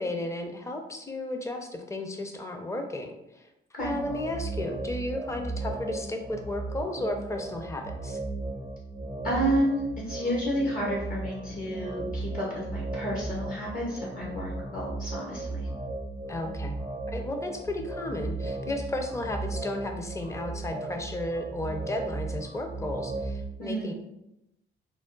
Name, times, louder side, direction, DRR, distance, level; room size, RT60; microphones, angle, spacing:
voice 1, 0.0-3.5 3.8-8.2 16.3-16.8 17.1-23.9, left 1 dB, 15° left, 4 dB, 0.5 m, -34 dB
sound 1, 3.8-23.4, right 2 dB, 70° left, 1.3 m, -36 dB
voice 2, 9.2-9.8 10.1-15.7 23.6-23.9, equal, 45° left, -4 dB, 0.9 m, -30 dB
3.5 x 2.1 x 3.8 m, 0.88 s
cardioid pair, 90°, 20 cm